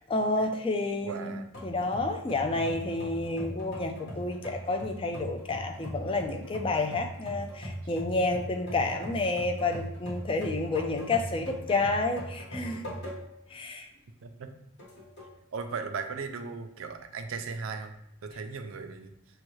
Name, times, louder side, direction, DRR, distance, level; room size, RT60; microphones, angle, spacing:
voice 1, 0.0-12.8 13.5-13.9, left 2 dB, 25° left, 4 dB, 0.4 m, -30 dB
voice 2, 1.0-1.5 2.5-2.8 4.5-4.6 14.2-14.5 15.5-17.9 18.2-19.1, right 5 dB, 75° right, 6 dB, 0.5 m, -37 dB
sound 1, 1.5-13.5 13.9-14.0 14.8-15.4, equal, 55° left, 1.5 m, -40 dB
6.5 x 2.3 x 3.1 m, 0.80 s
head